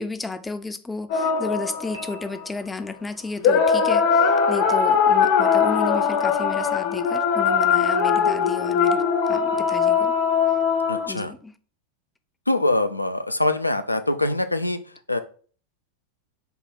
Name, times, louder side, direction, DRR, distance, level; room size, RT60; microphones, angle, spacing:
voice 1, 0.0-9.0 9.3-10.1 11.1-11.5, left 3 dB, 10° left, 0.4 m, -32 dB
sound 1, 1.1-2.5 3.4-11.1, left 6 dB, 50° left, 0.7 m, -21 dB
Piano, 1.9-3.0, right 4 dB, 70° right, 1.3 m, -48 dB
voice 2, 10.9-11.3 12.5-14.8 15.1-15.2, left 2 dB, 85° left, 0.4 m, -23 dB
5.2 x 2.3 x 4.2 m
figure-of-eight pair, 90°, 0 cm